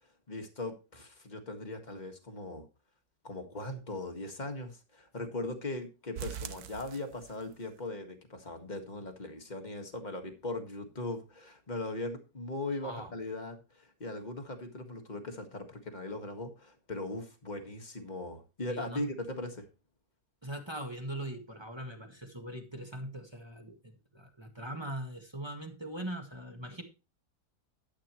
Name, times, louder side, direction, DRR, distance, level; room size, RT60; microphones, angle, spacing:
voice 1, 0.3-2.7 3.2-19.7, left 2 dB, 25° left, 5 dB, 1.8 m, -39 dB
sound 1, 6.2-7.7 8.0-8.1 8.5-8.6 9.0-9.1, right 9 dB, 65° right, 1.3 m, -43 dB
voice 2, 18.7-19.0 20.4-26.8, right 1 dB, 15° right, 2 dB, 1.7 m, -41 dB
13.0 x 8.6 x 3.1 m, 0.30 s
omnidirectional pair, 1.8 m